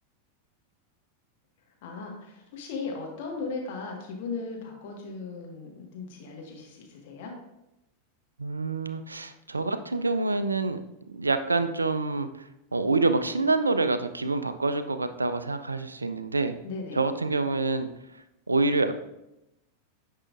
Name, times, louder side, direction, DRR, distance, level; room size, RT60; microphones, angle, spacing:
voice 1, 1.8-7.3 16.6-17.0, left 4 dB, 50° left, 0 dB, 1.5 m, -37 dB
voice 2, 8.4-10.8 11.1-12.3 12.7-16.6 16.9-17.9 18.5-18.9, right 3 dB, 80° right, 10 dB, 0.4 m, -26 dB
9.8 x 5.6 x 2.5 m, 0.89 s
figure-of-eight pair, 90°, 0 cm